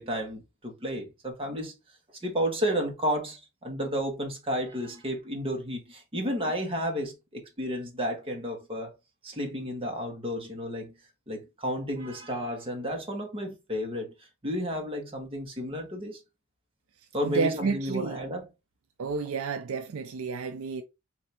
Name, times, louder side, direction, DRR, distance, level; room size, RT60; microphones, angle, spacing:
voice 1, 0.0-1.7 2.2-8.9 9.2-10.9 11.3-14.1 14.4-16.2 17.1-18.5, equal, 25° right, 1.2 m, -32 dB
voice 2, 17.2-18.2 19.0-20.8, right 4 dB, 65° right, 0.5 m, -30 dB
3.3 x 2.7 x 4.2 m
head